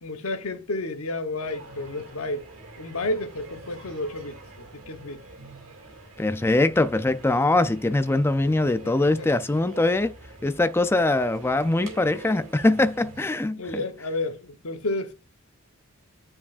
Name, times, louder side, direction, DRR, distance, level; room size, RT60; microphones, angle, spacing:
voice 1, 0.0-2.4 2.8-5.2 8.7-9.3 13.6-15.1, left 2 dB, 85° left, 1.0 m, -31 dB
sound 1, 1.4-13.3, right 2 dB, 65° right, 2.4 m, -46 dB
voice 2, 6.2-10.1 10.4-13.8, left 2 dB, 10° left, 0.4 m, -22 dB
9.6 x 4.8 x 2.5 m
head